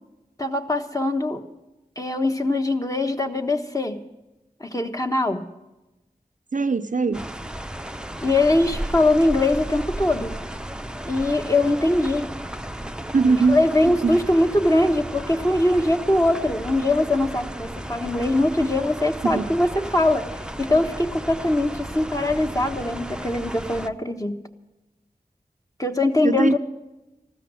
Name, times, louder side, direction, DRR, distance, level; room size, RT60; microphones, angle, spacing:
voice 1, 0.4-1.4 2.0-4.0 4.6-5.5 8.2-10.3 11.0-12.3 13.5-20.3 20.6-24.4 25.8-26.6, left 2 dB, 20° left, 1.3 m, -22 dB
voice 2, 6.5-7.3 13.1-13.6 14.0-14.2 19.2-19.5 26.2-26.6, right 4 dB, 55° right, 0.5 m, -21 dB
sound 1, 7.1-23.9, right 1 dB, 5° right, 0.6 m, -34 dB
15.0 x 13.0 x 6.2 m
wide cardioid pair, 50°, 16 cm